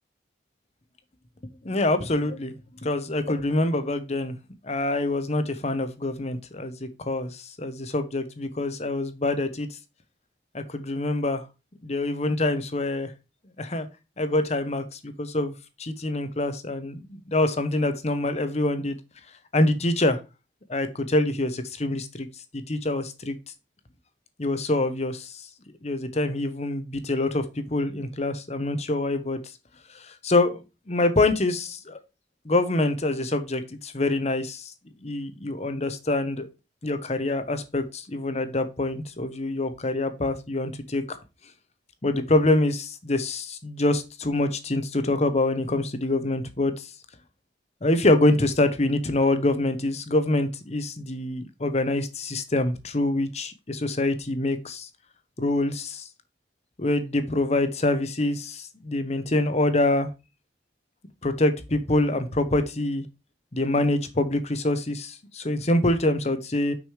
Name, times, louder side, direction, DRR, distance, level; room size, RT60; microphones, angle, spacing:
voice 1, 1.6-2.5 2.8-4.3 4.6-9.7 10.5-11.4 11.8-13.1 13.6-13.9 14.2-15.5 15.8-19.0 19.5-20.2 20.7-22.3 22.5-23.4 24.4-25.4 25.8-29.4 30.1-30.6 30.9-32.0 32.4-34.7 35.0-36.5 36.8-41.2 42.0-46.9 47.8-54.9 55.4-56.1 56.8-60.1 61.2-63.0 63.5-66.7, left 2 dB, 35° left, 1.0 m, -25 dB
6.3 x 5.2 x 4.9 m
head